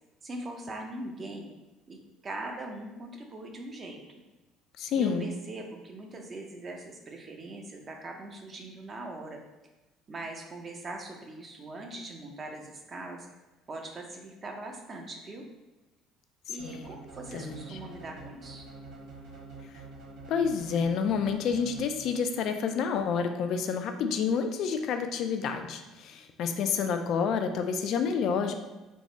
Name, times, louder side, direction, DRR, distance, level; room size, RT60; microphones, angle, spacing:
voice 1, 0.2-1.5 1.9-2.0 2.2-4.0 4.9-9.4 10.1-13.3 13.7-15.5 16.5-18.6, right 2 dB, 30° right, 2 dB, 0.5 m, -41 dB
voice 2, 4.8-5.3 16.5-16.9 17.3-17.8 19.6-19.8 20.3-28.5, left 6 dB, 60° left, 6 dB, 0.3 m, -29 dB
sound 1, 16.6-22.3, right 3 dB, 75° right, 1.1 m, -46 dB
3.5 x 2.0 x 3.7 m, 1.1 s
cardioid pair, 120°, 0 cm